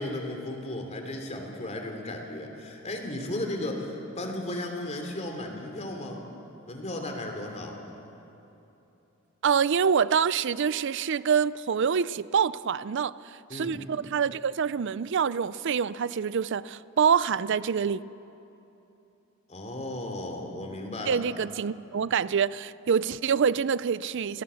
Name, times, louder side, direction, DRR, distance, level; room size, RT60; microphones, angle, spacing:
voice 1, 0.0-6.2 6.7-7.8 13.5-13.8 19.5-21.2, left 1 dB, 35° left, 3.1 m, -35 dB
voice 2, 9.4-13.1 13.5-18.0 21.1-24.4, right 7 dB, 60° right, 0.5 m, -26 dB
29.5 x 18.0 x 7.0 m
head